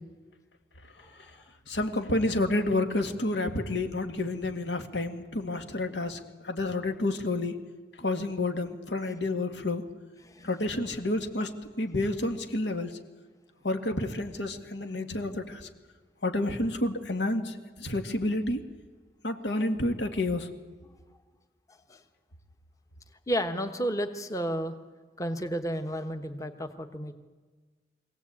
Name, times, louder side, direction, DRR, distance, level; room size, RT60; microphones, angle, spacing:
voice 1, 1.7-7.6 8.0-9.8 10.4-13.0 13.6-15.7 16.2-18.6 19.2-20.5, left 2 dB, 90° left, 7 dB, 2.0 m, -30 dB
voice 2, 21.7-22.0 23.3-24.7 25.2-27.1, equal, 20° left, 7 dB, 1.1 m, -32 dB
24.0 x 17.0 x 8.6 m, 1.4 s
head